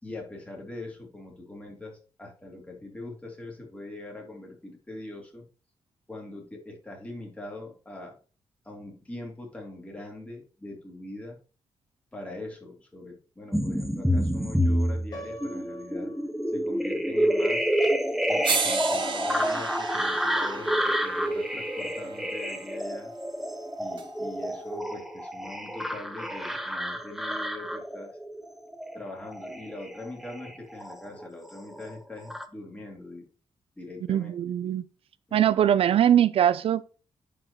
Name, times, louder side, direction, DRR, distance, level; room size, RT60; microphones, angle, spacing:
voice 1, 0.0-5.4 6.1-8.2 8.7-11.4 12.1-16.2 16.5-17.7 18.3-23.1 23.8-28.2 28.9-33.3 33.8-34.3 35.3-35.5, left 2 dB, 15° left, 3.5 m, -42 dB
sound 1, 13.5-31.3 31.6-32.5, equal, 5° right, 1.0 m, -29 dB
Piano, 15.1-17.1, right 1 dB, 45° left, 3.8 m, -45 dB
sound 2, 17.8-17.9 18.4-22.6 24.0-24.1, right 5 dB, 55° right, 1.7 m, -33 dB
voice 2, 34.1-34.8 35.3-36.8, right 10 dB, 70° right, 0.4 m, -22 dB
10.5 x 5.0 x 3.0 m
wide cardioid pair, 125°, 10 cm